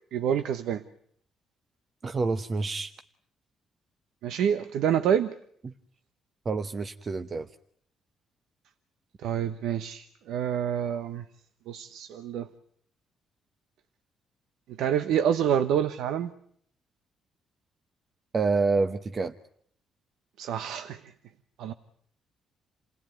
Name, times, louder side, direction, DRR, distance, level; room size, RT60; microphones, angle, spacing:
voice 1, 0.1-0.8 4.2-5.3 9.2-11.2 11.7-12.5 14.8-16.3 20.4-21.0 21.6-21.7, right 9 dB, 85° right, 10 dB, 1.1 m, -27 dB
voice 2, 2.0-2.9 5.6-5.7 6.4-7.5 18.3-19.3, right 4 dB, 40° right, 9 dB, 1.0 m, -27 dB
28.5 x 17.5 x 9.2 m, 0.67 s
cardioid pair, 90°, 0 cm